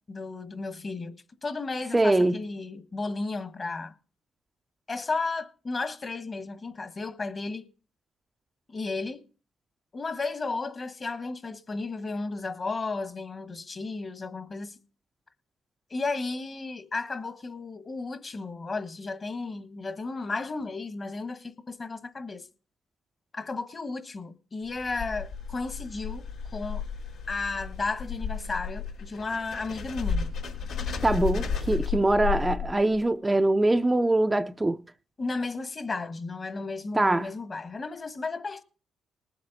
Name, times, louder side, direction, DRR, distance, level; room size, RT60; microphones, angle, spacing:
voice 1, 0.0-3.9 4.9-7.6 8.7-9.2 9.9-14.7 15.9-22.5 23.3-26.2 26.5-26.8 27.3-30.3 35.2-38.6, left 3 dB, 35° left, 1.4 m, -34 dB
voice 2, 1.9-2.4 31.0-34.8 37.0-37.3, right 2 dB, 15° right, 0.5 m, -23 dB
sound 1, 24.7-33.0, left 6 dB, 75° left, 3.7 m, -33 dB
20.0 x 7.5 x 4.1 m
cardioid pair, 90°, 0 cm